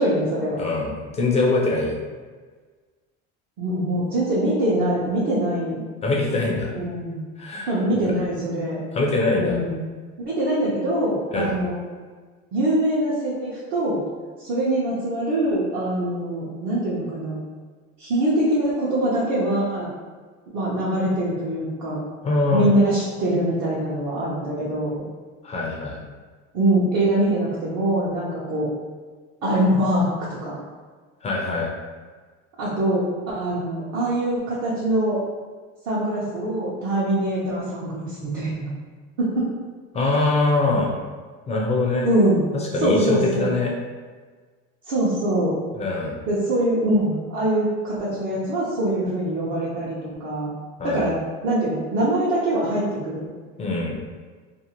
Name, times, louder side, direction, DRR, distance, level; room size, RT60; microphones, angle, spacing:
voice 1, 0.0-0.6 3.6-5.8 6.7-7.2 7.7-8.8 9.4-9.8 10.2-11.8 12.5-14.0 14.4-17.4 18.0-19.9 20.5-22.0 22.5-25.0 26.5-28.7 29.4-30.1 30.4-30.5 32.6-35.2 35.9-38.7 39.2-39.5 42.0-42.4 42.8-43.5 44.9-45.6 46.3-50.5 50.8-53.3, right 1 dB, 50° right, -8 dB, 0.7 m, -23 dB
voice 2, 0.6-1.9 6.0-6.7 7.4-7.7 8.9-9.6 11.3-11.5 22.2-22.7 25.4-26.0 31.2-31.7 39.9-40.9 41.5-42.1 42.5-43.7 45.8-46.2 50.8-51.0 53.6-54.0, left 2 dB, 20° left, -1 dB, 0.3 m, -23 dB
2.6 x 2.4 x 2.9 m, 1.5 s
cardioid pair, 140°, 32 cm